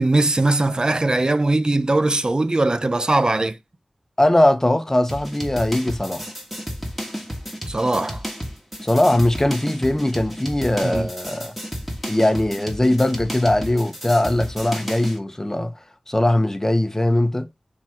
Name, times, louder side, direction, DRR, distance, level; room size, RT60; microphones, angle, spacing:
voice 1, 0.0-3.6 7.7-8.2 10.8-11.1, right 2 dB, 40° right, 0.7 m, -20 dB
voice 2, 4.2-6.3 8.8-11.5 12.1-15.7 16.1-17.5, left 1 dB, 20° left, 1.1 m, -20 dB
sound 1, 5.1-15.2, equal, 5° right, 2.1 m, -32 dB
6.1 x 3.9 x 4.4 m
wide cardioid pair, 55°, 2 cm